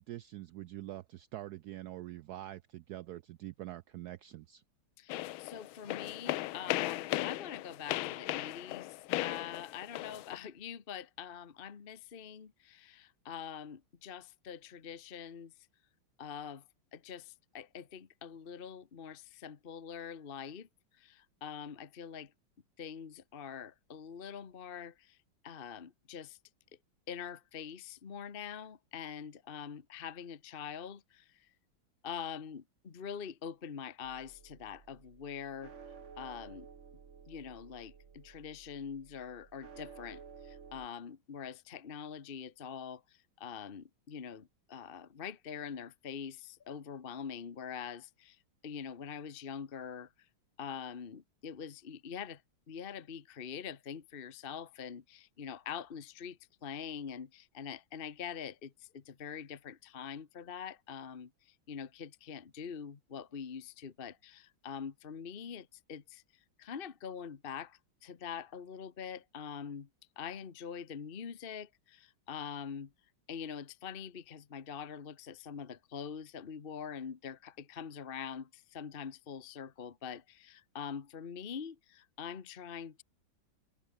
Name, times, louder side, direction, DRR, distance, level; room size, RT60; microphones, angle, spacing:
voice 1, 0.0-4.6, right 14 dB, 85° right, 0.8 m, -45 dB
voice 2, 5.0-15.5 16.2-16.6 16.9-20.7 21.0-22.3 22.8-25.2 25.4-26.4 27.1-31.5 32.0-35.7 36.2-36.7 37.3-50.1 50.6-52.4 52.7-66.2 66.6-69.9 70.2-72.9 73.3-83.0, left 7 dB, 35° left, 1.1 m, -44 dB
sound 1, 5.1-10.4, left 17 dB, 85° left, 1.4 m, -37 dB
sound 2, 34.0-40.9, right 6 dB, 40° right, 1.6 m, -54 dB
omnidirectional pair, 2.2 m